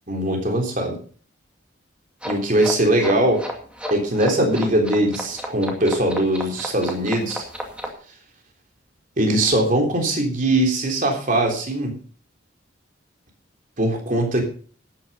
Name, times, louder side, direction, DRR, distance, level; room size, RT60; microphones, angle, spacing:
voice 1, 0.1-1.0 2.2-3.4 3.9-7.5 9.2-11.9 13.8-14.4, right 1 dB, 40° right, 2 dB, 3.4 m, -21 dB
sound 1, 2.2-7.9, equal, 5° right, 2.3 m, -32 dB
12.0 x 9.6 x 5.5 m, 0.43 s
head